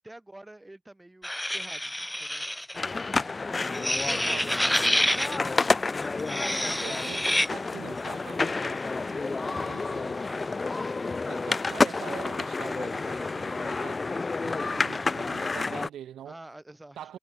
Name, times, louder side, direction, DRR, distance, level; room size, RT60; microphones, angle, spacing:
voice 1, 0.0-2.5 4.2-5.8 10.2-10.6 12.6-12.9 16.3-17.2, right 1 dB, 10° right, 5.6 m, -48 dB
sound 1, 1.2-2.8 3.7-5.4 6.2-7.5, left 1 dB, 5° left, 0.3 m, -27 dB
sound 2, 2.7-15.9, left 3 dB, 25° left, 2.8 m, -30 dB
voice 2, 3.8-5.4 6.6-10.2 11.2-14.1 14.4-16.4 17.0-17.2, right 11 dB, 70° right, 3.1 m, -45 dB
cardioid pair, 80°, 0 cm